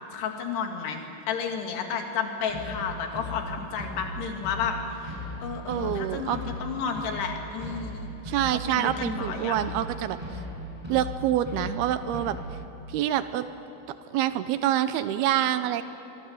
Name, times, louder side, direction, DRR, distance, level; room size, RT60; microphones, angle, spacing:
voice 1, 0.1-8.1 8.5-9.6, left 6 dB, 85° left, 3 dB, 4.1 m, -32 dB
sound 1, 2.5-12.5, left 1 dB, 5° right, 6.2 m, -38 dB
voice 2, 5.7-6.4 8.3-10.2 10.9-12.4 12.9-13.5 14.1-15.8, right 12 dB, 80° right, 12 dB, 2.7 m, -26 dB
23.5 x 23.5 x 8.0 m, 2.9 s
omnidirectional pair, 4.6 m